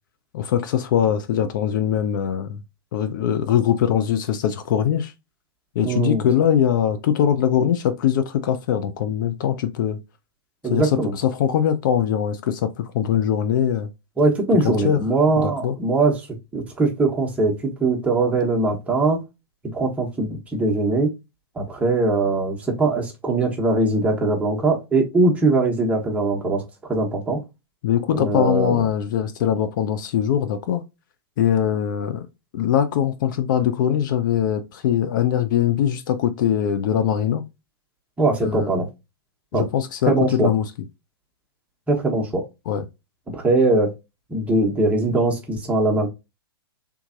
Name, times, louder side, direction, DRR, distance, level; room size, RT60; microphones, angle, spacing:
voice 1, 0.3-2.6 2.9-5.1 5.8-10.0 10.7-13.9 14.6-15.0 15.3-15.7 27.8-30.8 31.4-32.3 32.5-37.4 38.4-38.8 39.5-40.7 42.7-42.8, left 9 dB, 50° left, 0.5 m, -22 dB
voice 2, 5.8-6.2 10.6-11.1 14.2-16.3 16.5-19.2 19.7-21.1 21.5-27.4 28.1-28.9 38.2-38.9 39.5-39.7 40.1-40.5 41.9-42.5 43.3-43.9 44.3-46.1, right 2 dB, 10° right, 1.1 m, -21 dB
3.5 x 3.1 x 2.5 m
hypercardioid pair, 120°, 13 cm